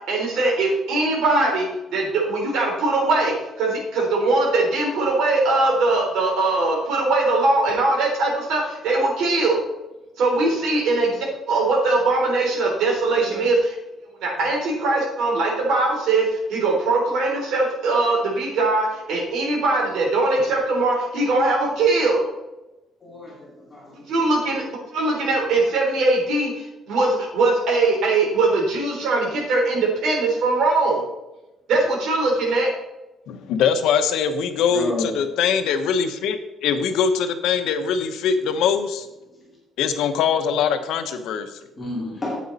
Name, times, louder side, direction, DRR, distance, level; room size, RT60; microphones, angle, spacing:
voice 1, 0.1-9.7 10.2-13.7 14.2-22.3 24.1-24.6 24.9-31.1 31.7-32.7, right 2 dB, 75° right, -1 dB, 3.8 m, -21 dB
voice 2, 23.0-23.8 34.7-35.1 41.8-42.4, left 2 dB, 15° left, -5 dB, 2.8 m, -29 dB
voice 3, 33.3-39.1 39.8-41.5, left 7 dB, 90° left, 8 dB, 1.0 m, -22 dB
9.3 x 8.6 x 4.1 m, 0.99 s
cardioid pair, 170°, 0 cm